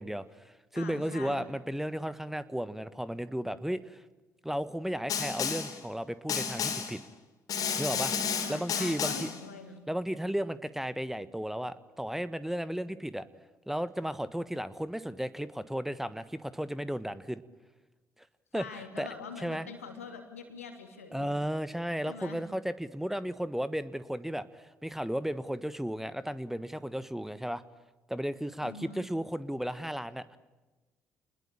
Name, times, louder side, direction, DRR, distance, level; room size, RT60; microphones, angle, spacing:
voice 1, 0.0-4.0 4.4-7.0 7.8-9.3 9.9-13.3 13.7-17.4 18.5-19.1 19.4-19.7 21.1-27.6 28.1-30.4, equal, 5° right, 14 dB, 1.4 m, -34 dB
voice 2, 0.7-1.5 8.4-9.9 18.5-21.3 22.0-22.4 28.6-29.1, left 5 dB, 85° left, 5 dB, 3.0 m, -44 dB
Snare drum, 5.1-5.8 6.3-7.0 7.5-9.4, left 6 dB, 55° left, 3.8 m, -32 dB
29.0 x 21.0 x 8.7 m, 1.2 s
figure-of-eight pair, 45°, 7 cm